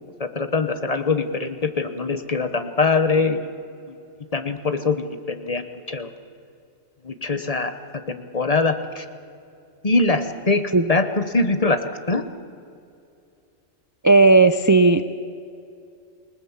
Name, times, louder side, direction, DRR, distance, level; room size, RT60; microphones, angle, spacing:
voice 1, 0.2-3.4 3.9-4.0 4.3-6.1 7.0-7.7 8.1-9.0 9.8-10.6 10.9-12.2, left 3 dB, 30° left, 9 dB, 1.1 m, -23 dB
voice 2, 14.0-15.0, right 3 dB, 30° right, 10 dB, 0.4 m, -14 dB
28.0 x 19.0 x 7.3 m, 2.5 s
omnidirectional pair, 1.2 m